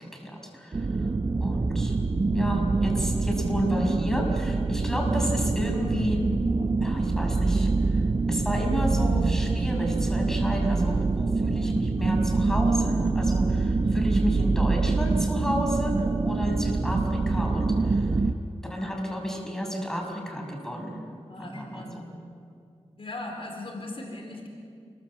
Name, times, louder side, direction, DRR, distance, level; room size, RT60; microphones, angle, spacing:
voice 1, 0.1-1.1 1.4-1.9 2.3-6.2 6.8-18.2 18.7-21.0 21.4-22.0, equal, 5° left, 1 dB, 6.0 m, -31 dB
sound 1, 0.7-18.3, right 3 dB, 40° right, 0.9 m, -25 dB
voice 2, 13.8-14.1 21.3-22.1 23.0-24.5, left 2 dB, 55° left, 1 dB, 4.3 m, -39 dB
28.5 x 23.0 x 7.5 m, 2.4 s
wide cardioid pair, 90°, 11 cm